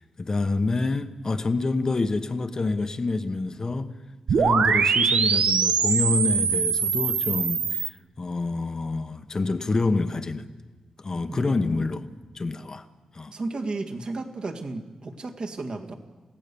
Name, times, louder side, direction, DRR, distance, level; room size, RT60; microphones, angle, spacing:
voice 1, 0.0-3.9 4.3-10.5 11.0-12.1 12.3-12.8 13.1-13.3, left 3 dB, 30° left, 1.0 m, -27 dB
sound 1, 4.3-7.9, right 6 dB, 85° right, 1.0 m, -22 dB
voice 2, 11.3-11.8 13.3-15.9, right 3 dB, 45° right, 1.9 m, -33 dB
28.5 x 17.0 x 7.0 m
wide cardioid pair, 165°, 2 cm